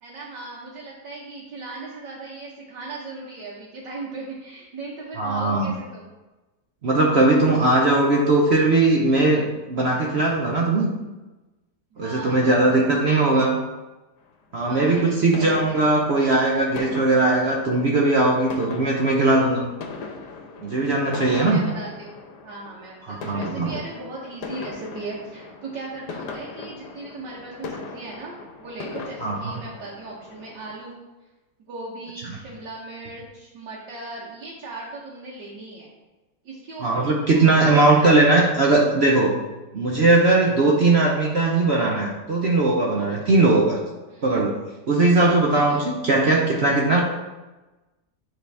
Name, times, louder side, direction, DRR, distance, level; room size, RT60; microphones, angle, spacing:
voice 1, 0.0-6.1 11.9-13.5 14.7-15.8 21.1-31.0 31.7-35.9 36.4-38.4 43.1-43.3 44.1-44.3 45.6-45.8, right 3 dB, 85° right, -5 dB, 1.7 m, -38 dB
voice 2, 5.2-5.7 6.8-10.9 12.0-13.6 14.5-19.6 20.6-21.6 23.1-23.7 29.2-29.5 36.8-39.3 39.7-43.8 44.2-44.6 44.9-47.0, right 2 dB, 60° right, -2 dB, 0.7 m, -19 dB
sound 1, 14.7-30.8, left 4 dB, 75° left, 1.3 m, -39 dB
9.3 x 3.9 x 3.4 m, 1.1 s
omnidirectional pair, 1.9 m